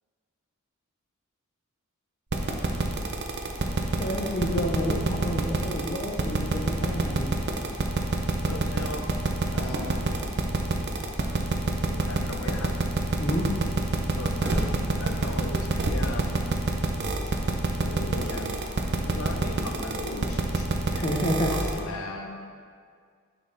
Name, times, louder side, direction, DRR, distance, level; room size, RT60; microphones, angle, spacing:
sound 1, 2.3-21.8, right 3 dB, 55° right, 0.7 m, -26 dB
voice 1, 4.0-7.3 13.2-13.5 20.9-21.5, equal, 30° left, 1 dB, 0.7 m, -29 dB
voice 2, 8.4-9.1 9.5-10.0 11.7-12.7 14.2-16.4 17.8-18.6 19.0-20.7 20.9-21.1 21.5-22.4, left 2 dB, 80° left, 3 dB, 0.7 m, -38 dB
9.0 x 4.3 x 3.9 m, 2.1 s
head